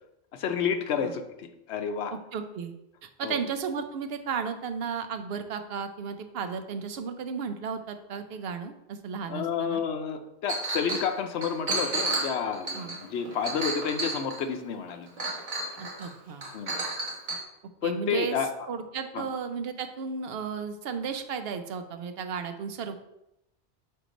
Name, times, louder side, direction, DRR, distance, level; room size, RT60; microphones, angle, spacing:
voice 1, 0.3-2.1 3.2-3.4 9.3-15.1 15.7-15.8 16.5-16.8 17.8-18.5 19.1-19.3, left 7 dB, 90° left, 7 dB, 0.9 m, -30 dB
voice 2, 2.1-2.7 3.0-9.8 12.7-12.9 15.8-16.5 17.8-18.4 18.7-23.0, right 6 dB, 70° right, 8 dB, 0.8 m, -34 dB
Chink clink, 10.5-11.1 11.4-14.5 15.2-16.1 16.4-17.4, right 2 dB, 50° right, 1.2 m, -32 dB
4.7 x 4.4 x 5.0 m, 0.85 s
omnidirectional pair, 1.1 m